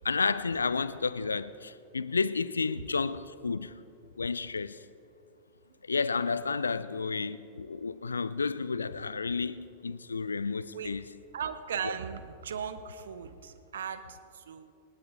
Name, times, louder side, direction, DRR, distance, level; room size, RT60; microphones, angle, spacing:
voice 1, 0.0-3.7 4.2-4.8 5.8-11.2 11.8-11.9, left 4 dB, 75° left, 0.5 m, -31 dB
voice 2, 11.3-14.2 14.5-14.7, right 7 dB, 65° right, 0.9 m, -37 dB
20.0 x 18.5 x 3.6 m
figure-of-eight pair, 90°, 0 cm